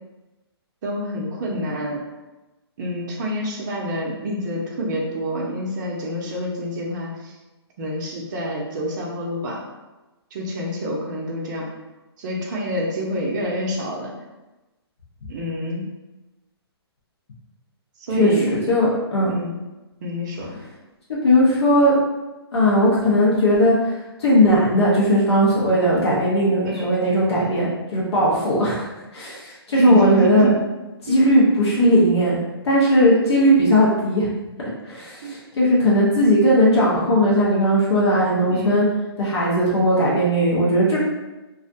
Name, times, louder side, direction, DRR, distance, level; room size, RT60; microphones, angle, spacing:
voice 1, 0.8-2.0 2.8-7.3 7.8-9.6 10.3-11.7 12.2-14.1 15.3-15.9 18.0-18.5 19.3-19.6 20.0-20.6 26.6-27.0 27.5-27.6 29.7-30.5 31.1-31.2 35.2-35.3 38.5-38.7, equal, 45° right, -2 dB, 0.5 m, -27 dB
voice 2, 18.2-19.3 21.1-22.0 22.5-28.9 29.1-30.5 31.0-32.4 32.6-34.3 34.8-38.8 39.2-41.0, equal, 75° left, -6 dB, 0.8 m, -18 dB
2.4 x 2.1 x 2.6 m, 1.1 s
hypercardioid pair, 150°, 14 cm